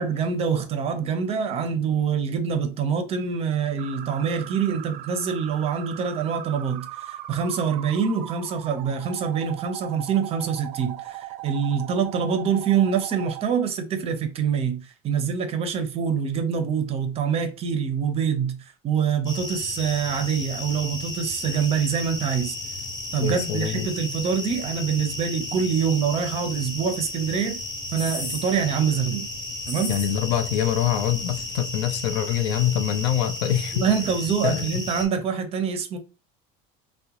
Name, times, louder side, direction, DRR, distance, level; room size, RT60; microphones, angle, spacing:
voice 1, 0.0-14.8 15.0-22.5 23.1-27.6 27.9-29.3 29.7-30.0 33.7-36.0, right 7 dB, 30° right, 0.5 m, -25 dB
sound 1, 3.8-13.4, right 13 dB, 85° right, 0.4 m, -39 dB
sound 2, 19.3-35.1, left 2 dB, 20° left, 0.8 m, -34 dB
voice 2, 23.2-23.9 29.9-33.9 34.4-34.8, left 10 dB, 85° left, 0.5 m, -24 dB
3.6 x 2.1 x 2.9 m
cardioid pair, 145°, 20 cm